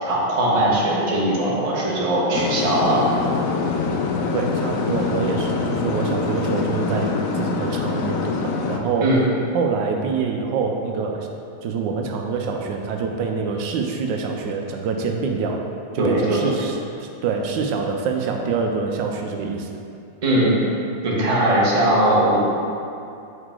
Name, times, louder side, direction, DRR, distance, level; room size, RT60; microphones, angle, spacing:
voice 1, 0.0-3.0 9.0-9.2 16.0-16.7 20.2-20.5 21.0-22.4, right 1 dB, 25° right, -5 dB, 0.9 m, -20 dB
sound 1, 2.3-8.8, left 4 dB, 85° left, 0.7 m, -24 dB
voice 2, 4.3-9.1 9.5-11.3 11.6-15.6 15.9-19.7, right 5 dB, 80° right, 2 dB, 1.2 m, -25 dB
6.4 x 4.8 x 3.7 m, 2.6 s
omnidirectional pair, 2.0 m